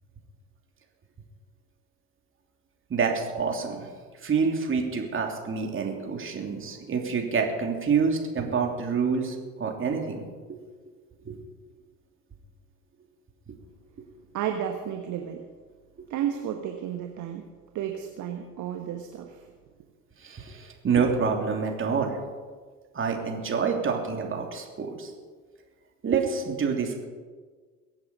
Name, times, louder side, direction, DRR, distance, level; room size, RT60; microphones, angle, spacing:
voice 1, 2.9-3.9 4.2-10.2 10.5-10.6 11.2-11.4 20.2-22.2 22.9-25.1 26.0-27.0, right 5 dB, 30° right, 2 dB, 3.1 m, -27 dB
voice 2, 14.3-15.4 16.1-17.4 17.7-19.4, right 9 dB, 45° right, 4 dB, 1.4 m, -32 dB
22.5 x 8.3 x 5.5 m, 1.5 s
figure-of-eight pair, 65°, 40 cm